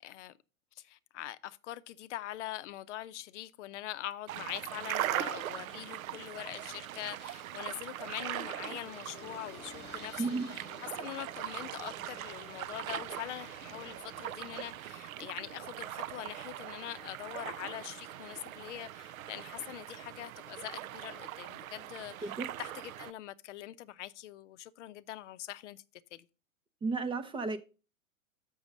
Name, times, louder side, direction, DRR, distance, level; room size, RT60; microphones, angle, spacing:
voice 1, 0.0-0.3 0.8-25.8 26.1-26.3, left 14 dB, 60° left, 0.6 m, -43 dB
sound 1, 4.3-23.1, right 12 dB, 80° right, 0.5 m, -41 dB
sound 2, 8.8-14.8, left 6 dB, 25° left, 1.2 m, -54 dB
voice 2, 10.2-10.5 22.2-22.5 26.8-27.6, right 3 dB, 15° right, 0.5 m, -33 dB
6.9 x 6.3 x 5.2 m
hypercardioid pair, 115°, 41 cm